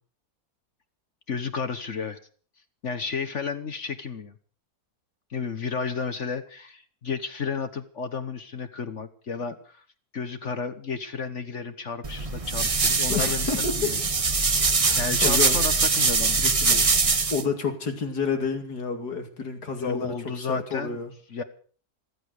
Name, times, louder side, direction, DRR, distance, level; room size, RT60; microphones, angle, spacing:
voice 1, 1.3-2.2 2.8-4.3 5.3-9.8 10.1-14.0 15.0-16.9 19.8-21.0 21.3-21.4, left 5 dB, 50° left, 9 dB, 1.5 m, -32 dB
sound 1, 12.0-17.4, right 4 dB, 25° right, 0.8 m, -23 dB
voice 2, 13.1-13.9 14.8-15.6 17.3-21.1, left 5 dB, 85° left, 6 dB, 3.1 m, -29 dB
14.5 x 14.5 x 6.6 m, 0.42 s
omnidirectional pair, 1.7 m